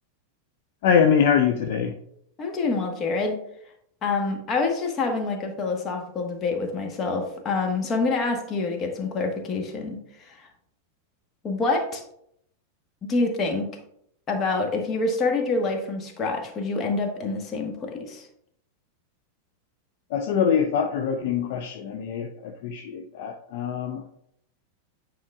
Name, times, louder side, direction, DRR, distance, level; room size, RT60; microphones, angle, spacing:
voice 1, 0.8-2.0 20.1-24.1, left 7 dB, 50° left, 5 dB, 0.5 m, -24 dB
voice 2, 2.4-3.4 4.0-10.5 11.4-12.0 13.0-13.7 14.3-18.3, left 3 dB, 25° left, 3 dB, 1.3 m, -26 dB
9.5 x 4.9 x 2.4 m, 0.73 s
figure-of-eight pair, 90°, 0 cm